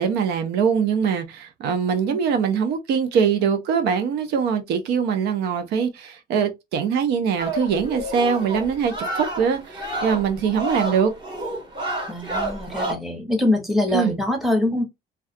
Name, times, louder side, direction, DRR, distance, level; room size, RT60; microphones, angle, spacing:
voice 1, 0.0-11.1 13.9-14.2, right 6 dB, 80° right, 0.5 m, -22 dB
sound 1, 7.4-12.9, right 1 dB, 30° right, 1.2 m, -30 dB
voice 2, 12.1-14.8, left 1 dB, ahead, 0.9 m, -23 dB
2.3 x 2.3 x 2.5 m
cardioid pair, 110°, 17 cm